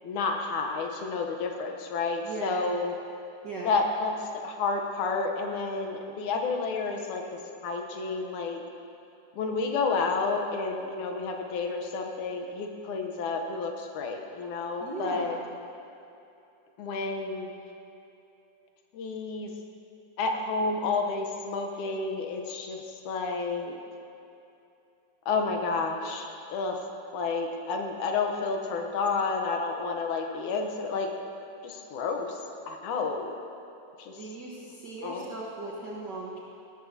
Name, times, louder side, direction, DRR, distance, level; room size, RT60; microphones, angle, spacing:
voice 1, 0.0-2.9 3.6-7.2 7.6-8.6 9.3-15.4 16.8-17.5 18.9-19.5 20.2-23.8 25.3-26.8 27.1-31.1 31.6-32.4 32.7-33.4 34.0-34.1 35.0-35.3, left 4 dB, 75° left, 3 dB, 2.4 m, -30 dB
voice 2, 2.2-2.7 3.4-3.7 14.8-15.4 34.2-36.4, right 2 dB, 60° right, -5 dB, 1.1 m, -37 dB
17.0 x 13.5 x 2.8 m, 2.8 s
omnidirectional pair, 3.6 m